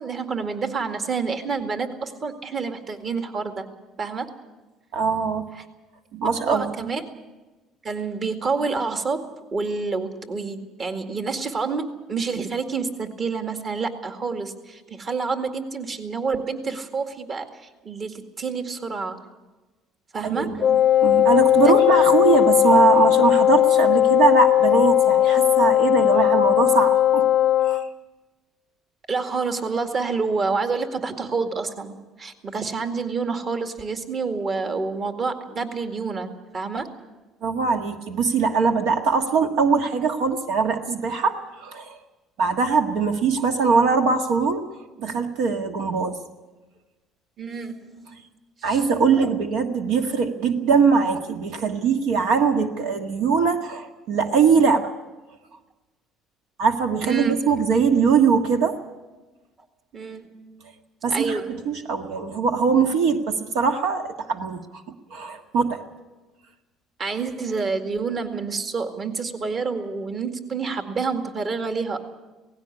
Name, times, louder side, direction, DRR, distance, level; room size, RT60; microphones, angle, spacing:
voice 1, 0.0-3.7 4.0-4.3 5.5-5.6 6.4-7.0 7.8-19.2 20.1-20.6 21.6-21.7 29.1-36.9 47.4-48.2 48.7-48.8 49.2-49.3 57.0-57.4 59.9-60.6 61.1-61.5 67.0-72.0, right 4 dB, 40° right, 6 dB, 2.1 m, -28 dB
voice 2, 4.9-5.4 6.1-6.9 20.2-27.2 27.6-27.9 37.4-42.0 42.4-44.7 45.0-46.2 48.6-54.9 56.6-58.8 61.0-64.8 65.1-65.8, right 5 dB, 80° right, 6 dB, 1.6 m, -21 dB
Wind instrument woodwind instrument, 20.6-27.9, left 12 dB, 45° left, 0.6 m, -18 dB
18.0 x 16.0 x 9.8 m, 1.2 s
cardioid pair, 115°, 0 cm